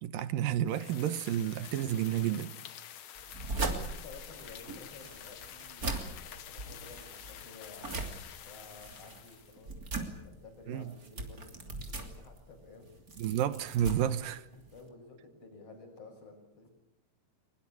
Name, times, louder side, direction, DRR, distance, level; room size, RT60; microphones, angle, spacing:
voice 1, 0.0-2.5 10.7-10.9 13.2-14.4, right 10 dB, 70° right, 2.6 m, -31 dB
sound 1, 0.6-9.7, left 10 dB, 60° left, 2.0 m, -49 dB
sound 2, 3.1-14.9, right 3 dB, 25° right, 2.9 m, -40 dB
voice 2, 3.7-13.3 14.2-16.7, left 3 dB, 40° left, 7.3 m, -53 dB
23.0 x 22.5 x 8.6 m
omnidirectional pair, 4.5 m